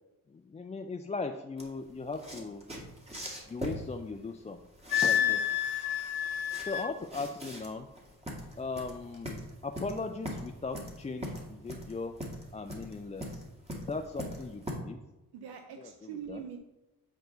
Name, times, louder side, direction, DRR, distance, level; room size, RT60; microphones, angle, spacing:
voice 1, 0.3-2.6 3.5-4.6 5.0-5.4 6.6-7.9 8.6-12.1 12.5-13.5 13.7-15.0 15.7-16.4, left 3 dB, 20° left, 5 dB, 0.4 m, -38 dB
sound 1, 1.6-14.7, equal, 15° right, 2.1 m, -41 dB
Wind instrument woodwind instrument, 4.9-6.9, left 10 dB, 80° left, 0.6 m, -29 dB
voice 2, 15.3-16.6, right 7 dB, 80° right, 5 dB, 0.7 m, -43 dB
8.1 x 4.5 x 3.9 m, 1.0 s
supercardioid pair, 60°, 37 cm